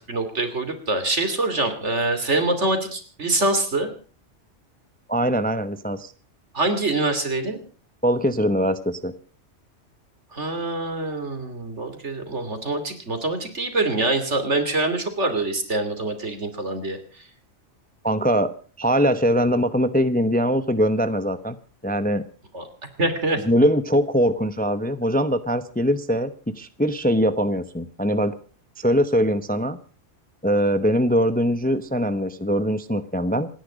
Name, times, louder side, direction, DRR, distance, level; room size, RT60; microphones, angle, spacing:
voice 1, 0.1-3.9 6.5-7.6 10.3-17.0 22.5-22.6 23.0-23.4, right 2 dB, 70° right, 8 dB, 3.1 m, -25 dB
voice 2, 5.1-6.1 8.0-9.1 18.0-18.5 18.8-21.6 21.8-22.2 23.4-28.3 28.8-29.8 30.4-33.5, equal, 10° left, 12 dB, 0.7 m, -22 dB
27.0 x 10.5 x 5.1 m, 0.39 s
omnidirectional pair, 1.3 m